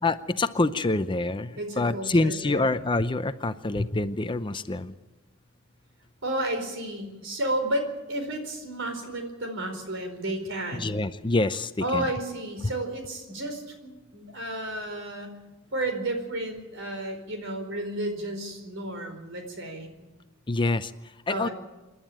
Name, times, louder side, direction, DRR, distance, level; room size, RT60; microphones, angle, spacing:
voice 1, 0.0-4.9 10.8-12.1 20.5-21.5, left 2 dB, 25° left, 12 dB, 0.6 m, -26 dB
voice 2, 1.6-2.6 6.2-11.0 11.8-15.4 15.7-19.9 21.3-21.5, right 1 dB, 65° right, 6 dB, 4.5 m, -32 dB
27.5 x 11.0 x 9.0 m, 1.2 s
head